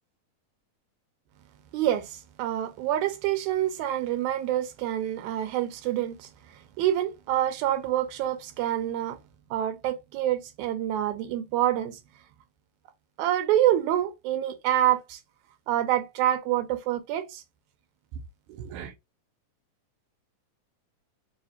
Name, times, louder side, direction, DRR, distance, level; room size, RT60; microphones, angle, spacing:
voice 1, 1.7-9.2 9.5-12.0 13.2-15.2 15.7-17.4 18.6-18.9, right 12 dB, 80° right, 1.9 m, -27 dB
5.0 x 2.4 x 2.7 m
omnidirectional pair, 3.5 m